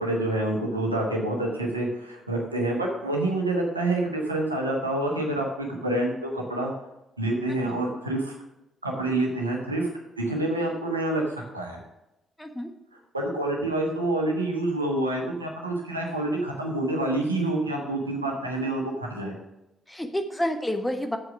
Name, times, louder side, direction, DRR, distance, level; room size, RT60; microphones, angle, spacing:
voice 1, 0.0-6.7 7.2-8.3 8.8-9.9 10.2-11.8 13.1-19.3, right 1 dB, 85° right, 0 dB, 1.3 m, -27 dB
voice 2, 12.4-12.7 19.9-21.2, left 1 dB, 10° left, 6 dB, 1.4 m, -29 dB
7.9 x 7.4 x 6.0 m, 0.94 s
figure-of-eight pair, 40°, 0 cm